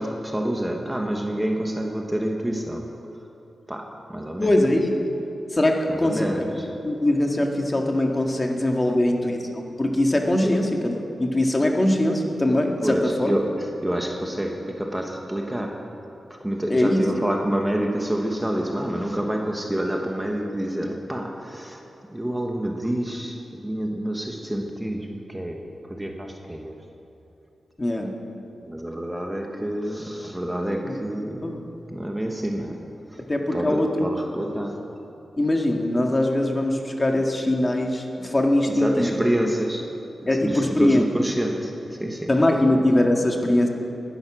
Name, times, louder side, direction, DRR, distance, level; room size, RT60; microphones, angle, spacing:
voice 1, 0.0-2.9 3.7-4.5 5.9-6.7 8.9-9.0 10.4-10.8 12.8-16.0 16.3-21.8 22.1-26.8 28.6-33.3 33.5-34.9 38.7-40.0 40.4-42.3, right 1 dB, 10° right, 2 dB, 1.3 m, -28 dB
voice 2, 4.4-4.9 5.5-6.4 6.8-10.9 11.2-13.3 16.7-17.0 27.8-28.2 30.8-30.9 31.4-31.6 33.2-34.1 35.4-39.2 40.3-41.0 42.3-43.7, left 1 dB, 25° left, 2 dB, 1.9 m, -22 dB
19.5 x 11.5 x 6.2 m, 2.9 s
wide cardioid pair, 90°, 0 cm